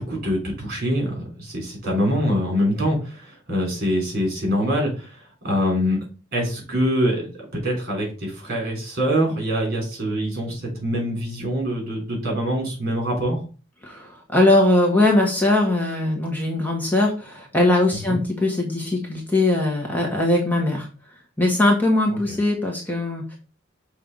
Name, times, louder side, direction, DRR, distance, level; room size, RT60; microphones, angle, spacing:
voice 1, 0.0-6.0 6.3-13.4 18.1-18.2 22.1-22.2, equal, 50° right, 0 dB, 3.4 m, -24 dB
voice 2, 13.8-20.9 21.4-23.4, left 2 dB, 10° left, 0 dB, 1.2 m, -20 dB
6.4 x 3.4 x 5.2 m, 0.35 s
head